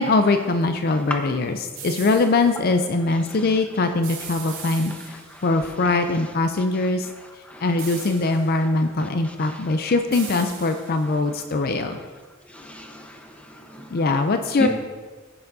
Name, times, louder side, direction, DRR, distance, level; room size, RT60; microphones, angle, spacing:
voice 1, 0.0-7.1 7.6-12.0 13.9-14.7, left 3 dB, 50° left, 7 dB, 0.5 m, -22 dB
voice 2, 0.9-1.2 3.3-3.4 4.4-5.9 6.8-8.1 8.6-8.7 9.0-9.8 11.0-11.4 11.9-12.1 12.5-14.1 14.6-14.7, equal, 5° left, 2 dB, 0.9 m, -37 dB
sound 1, 1.7-2.5 4.0-5.5 7.8-8.6 10.1-11.2, right 6 dB, 80° right, 2.2 m, -39 dB
15.0 x 6.8 x 2.6 m, 1.4 s
head